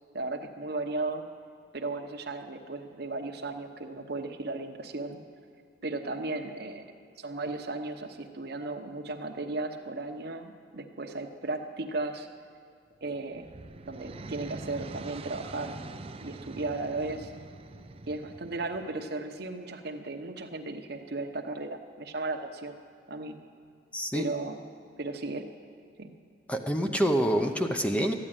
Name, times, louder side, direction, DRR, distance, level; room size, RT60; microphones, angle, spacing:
voice 1, 0.1-1.2 1.7-5.2 5.8-6.9 7.2-12.3 13.0-13.4 13.9-15.8 16.2-17.3 18.1-22.7 23.1-23.4 24.1-24.6 25.0-25.5 26.0-26.1, right 2 dB, 60° right, 4 dB, 1.0 m, -35 dB
sound 1, 13.0-19.1, right 2 dB, 35° right, 0.5 m, -44 dB
voice 2, 23.9-24.2 26.5-28.1, equal, 10° left, 5 dB, 0.7 m, -26 dB
13.5 x 9.9 x 9.0 m, 2.3 s
head